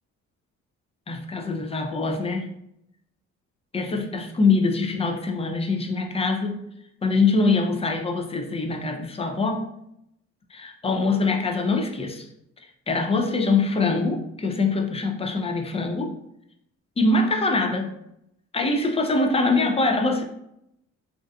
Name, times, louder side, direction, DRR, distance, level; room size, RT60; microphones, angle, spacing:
voice 1, 1.1-2.5 3.7-6.7 7.0-9.7 10.5-12.3 12.9-16.1 17.0-17.9 18.5-20.2, left 3 dB, 20° left, 3 dB, 0.3 m, -23 dB
2.4 x 2.4 x 2.2 m, 0.78 s
cardioid pair, 90°, 30 cm